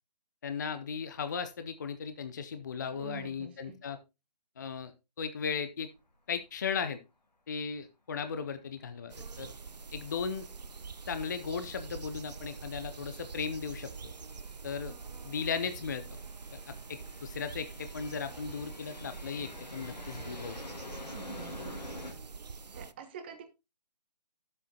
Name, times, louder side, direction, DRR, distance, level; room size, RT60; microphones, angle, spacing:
voice 1, 0.4-4.0 4.6-4.9 5.2-5.9 6.3-7.0 7.5-9.5 9.9-10.5 11.1-13.9 14.6-15.0 15.2-16.0 16.9-20.6, left 6 dB, 25° left, 0.5 m, -36 dB
voice 2, 2.9-3.8 21.1-21.9 22.7-23.4, right 6 dB, 15° right, 0.7 m, -46 dB
sound 1, 6.0-6.1 6.4-6.5 10.6-10.7 11.7-11.9 12.6-22.1, left 2 dB, 80° left, 2.2 m, -48 dB
sound 2, 9.1-22.9, right 4 dB, 75° right, 0.6 m, -45 dB
11.0 x 7.6 x 2.8 m
figure-of-eight pair, 150°, 21 cm